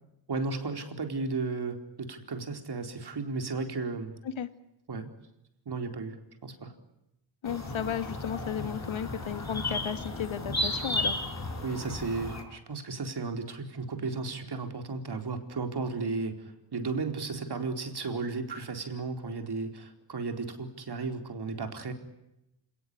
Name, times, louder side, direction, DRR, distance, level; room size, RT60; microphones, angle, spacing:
voice 1, 0.3-4.1 4.9-5.1 5.7-6.2 6.4-6.7 11.6-21.9, right 4 dB, 50° right, 6 dB, 4.4 m, -34 dB
voice 2, 7.4-11.2, left 8 dB, 70° left, 11 dB, 2.1 m, -34 dB
sound 1, 7.5-12.4, left 2 dB, 35° left, 5.8 m, -34 dB
28.5 x 18.5 x 9.9 m, 0.90 s
cardioid pair, 90°, 49 cm